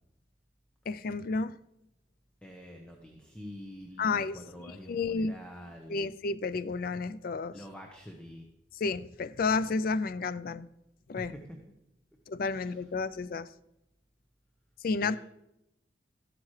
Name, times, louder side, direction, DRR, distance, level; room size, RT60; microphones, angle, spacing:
voice 1, 0.9-1.6 4.0-4.4 4.9-5.3 5.9-7.5 8.8-10.7 11.1-11.3 12.3-13.5 14.8-15.2, left 4 dB, 50° left, 0.4 m, -31 dB
voice 2, 2.4-6.1 7.5-8.5 11.1-11.6 12.5-12.9 15.0-15.2, equal, 5° left, 1.1 m, -46 dB
13.5 x 12.0 x 3.2 m
head